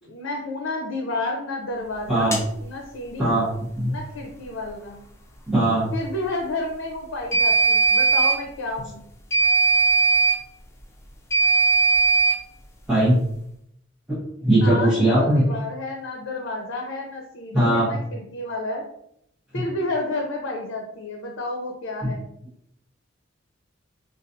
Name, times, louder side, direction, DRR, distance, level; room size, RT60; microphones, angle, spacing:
voice 1, 0.0-3.5 3.9-5.0 5.9-9.0 14.4-18.9 19.5-22.2, left 2 dB, 85° left, 1 dB, 0.5 m, -31 dB
sound 1, 2.3-2.5 7.3-8.4 9.3-10.4 11.3-12.4, right 4 dB, 15° left, 0.4 m, -18 dB
voice 2, 5.5-5.9 12.9-13.2 14.4-15.4 17.5-17.9, right 1 dB, 5° right, -12 dB, 1.1 m, -19 dB
3.9 x 2.4 x 2.6 m, 0.74 s
head